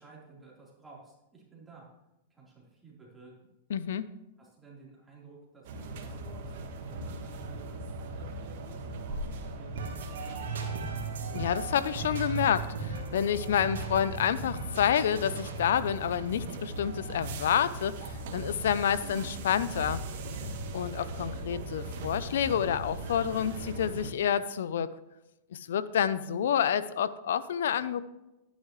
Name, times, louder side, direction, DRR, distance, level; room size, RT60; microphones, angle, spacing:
voice 1, 0.0-1.9 2.3-3.3 4.4-10.9, right 4 dB, 10° right, -5 dB, 4.0 m, -54 dB
voice 2, 3.7-4.1 11.3-20.0 20.7-24.9 25.5-28.0, left 9 dB, 75° left, 16 dB, 0.6 m, -29 dB
sound 1, 5.6-24.1, right 1 dB, 60° right, 1.7 m, -39 dB
sound 2, 9.8-17.6, right 4 dB, 85° right, 2.2 m, -39 dB
11.5 x 10.5 x 3.2 m, 0.96 s
hypercardioid pair, 130°, 0 cm